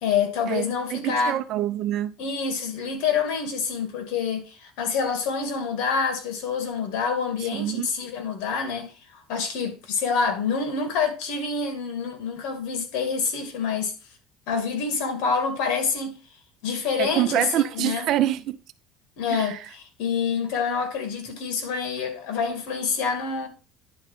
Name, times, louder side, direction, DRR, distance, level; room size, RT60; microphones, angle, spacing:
voice 1, 0.0-1.4 2.2-8.9 9.3-13.9 14.5-16.2 16.6-18.1 19.2-23.5, left 5 dB, 75° left, 2.4 m, -27 dB
voice 2, 0.9-2.1 7.5-7.9 17.0-18.6 19.3-19.6, right 13 dB, 50° right, 0.7 m, -25 dB
10.5 x 4.1 x 5.0 m
cardioid pair, 155°, 0 cm